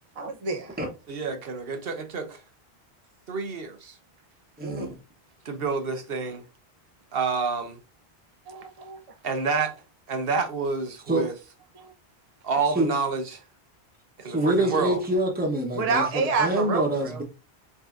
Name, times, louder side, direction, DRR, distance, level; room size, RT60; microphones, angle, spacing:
voice 1, 0.2-0.8 4.6-4.9 8.5-9.0 11.8-11.9 14.2-14.4 15.7-17.2, right 4 dB, 40° right, 0.9 m, -28 dB
voice 2, 1.1-2.4 3.3-4.0 5.4-6.4 7.1-7.8 9.2-9.8 10.1-11.3 12.4-13.4 14.2-15.0, right 4 dB, 65° right, 1.2 m, -28 dB
voice 3, 4.6-4.9 11.1-11.3 12.7-12.9 14.2-17.2, right 1 dB, 10° right, 1.2 m, -26 dB
5.4 x 3.8 x 2.6 m
omnidirectional pair, 1.1 m